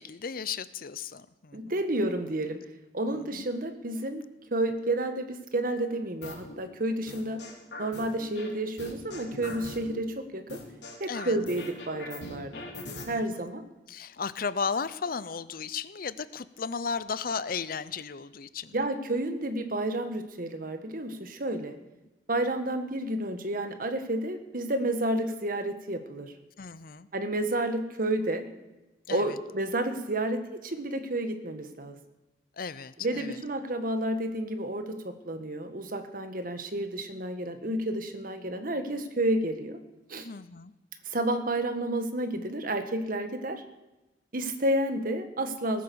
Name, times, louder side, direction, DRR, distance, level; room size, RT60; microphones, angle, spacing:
voice 1, 0.0-1.8 3.1-3.4 11.1-11.4 13.1-13.5 13.9-18.8 26.6-27.1 29.1-29.4 32.6-33.4 40.2-40.7, left 5 dB, 55° left, 15 dB, 0.7 m, -35 dB
voice 2, 1.5-2.6 2.9-4.2 4.5-7.4 7.8-10.6 11.0-12.7 13.1-13.6 18.7-21.7 22.3-26.3 27.1-28.5 29.1-32.0 33.0-39.8 40.1-40.3 41.0-43.6 44.3-45.8, right 1 dB, 50° right, 8 dB, 1.5 m, -30 dB
sound 1, 6.2-6.6 7.1-8.5 8.8-10.0 10.5-13.0, left 2 dB, 70° left, 3.8 m, -41 dB
18.5 x 10.5 x 7.0 m, 1.0 s
head